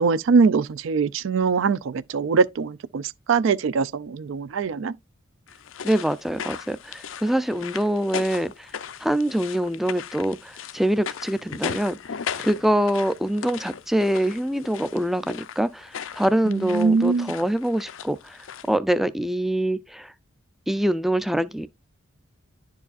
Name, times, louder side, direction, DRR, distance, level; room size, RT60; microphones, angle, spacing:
voice 1, 0.0-4.9 16.5-17.3, right 5 dB, 75° right, 0.4 m, -22 dB
sound 1, 5.5-18.8, left 7 dB, 75° left, 0.5 m, -37 dB
voice 2, 5.8-8.7 9.0-12.0 12.4-18.4 18.7-20.1 20.7-21.7, right 1 dB, ahead, 0.3 m, -24 dB
11.0 x 4.8 x 2.4 m
head